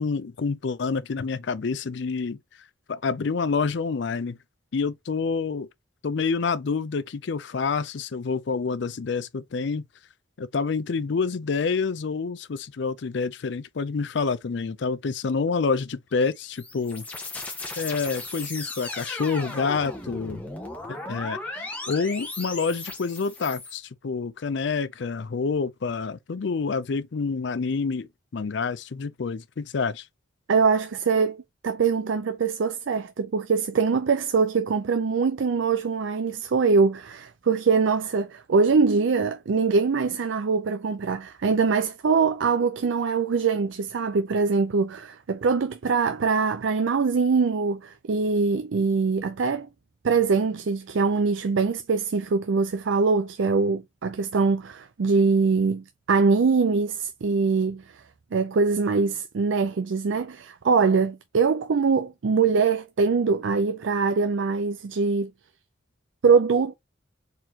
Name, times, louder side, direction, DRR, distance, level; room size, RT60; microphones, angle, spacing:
voice 1, 0.0-2.4 2.9-4.4 4.7-5.7 6.0-9.9 10.4-17.0 17.8-20.4 20.9-28.1 28.3-30.1, left 4 dB, 60° left, 0.5 m, -28 dB
sound 1, 16.2-23.8, left 2 dB, 10° left, 1.1 m, -36 dB
voice 2, 30.5-49.7 50.0-57.8 58.3-65.3 66.2-66.7, right 5 dB, 75° right, 0.5 m, -23 dB
4.4 x 4.0 x 2.8 m
head